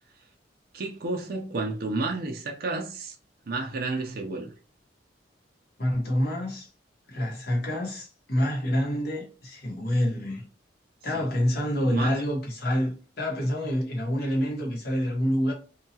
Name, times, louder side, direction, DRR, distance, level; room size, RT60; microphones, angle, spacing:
voice 1, 0.7-3.2 3.5-4.5 11.1-11.3 11.8-12.2, right 3 dB, 55° right, 0.5 m, -31 dB
voice 2, 5.8-6.7 7.1-10.5 11.0-15.5, equal, 60° left, 1.0 m, -27 dB
2.8 x 2.2 x 2.7 m
head